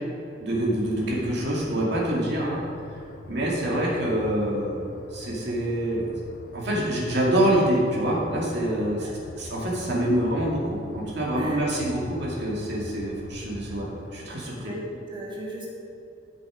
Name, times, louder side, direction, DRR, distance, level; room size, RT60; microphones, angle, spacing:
voice 1, 0.4-2.6 3.3-4.8 5.1-6.1 6.5-9.1 9.4-13.9 14.1-14.6, right 1 dB, 65° right, -4 dB, 2.1 m, -26 dB
sound 1, 0.5-14.2, left 2 dB, 55° left, 0.7 m, -42 dB
voice 2, 14.6-15.7, right 1 dB, 25° right, -3 dB, 2.1 m, -37 dB
12.5 x 6.4 x 5.0 m, 2.7 s
head